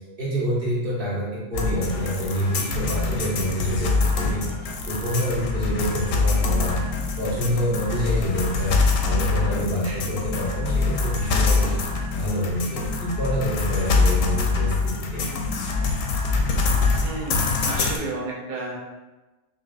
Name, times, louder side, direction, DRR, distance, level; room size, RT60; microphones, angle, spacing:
voice 1, 0.2-6.8 7.2-8.8 9.0-11.7 12.1-15.2, equal, 40° right, -7 dB, 1.3 m, -27 dB
sound 1, 1.5-18.0, left 4 dB, 70° left, 1.0 m, -24 dB
voice 2, 17.0-18.8, right 2 dB, 55° right, -4 dB, 0.5 m, -32 dB
5.7 x 2.5 x 2.4 m, 1.2 s
omnidirectional pair, 1.5 m